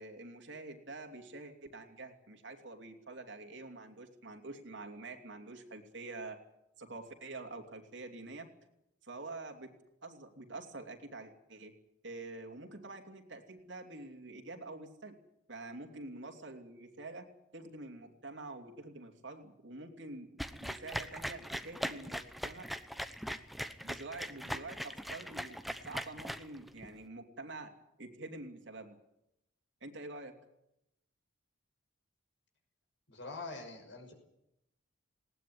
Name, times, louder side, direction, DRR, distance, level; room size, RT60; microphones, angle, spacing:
voice 1, 0.0-6.4 6.8-8.5 9.0-9.7 10.0-11.7 12.0-15.1 15.5-17.3 17.5-20.3 20.6-22.7 23.8-27.7 28.0-29.0 29.8-30.3, right 2 dB, 65° right, 4 dB, 3.0 m, -47 dB
sound 1, 20.4-26.9, equal, ahead, 0.9 m, -40 dB
voice 2, 33.1-34.1, left 3 dB, 60° left, 3 dB, 5.9 m, -44 dB
20.0 x 18.5 x 9.5 m, 0.84 s
head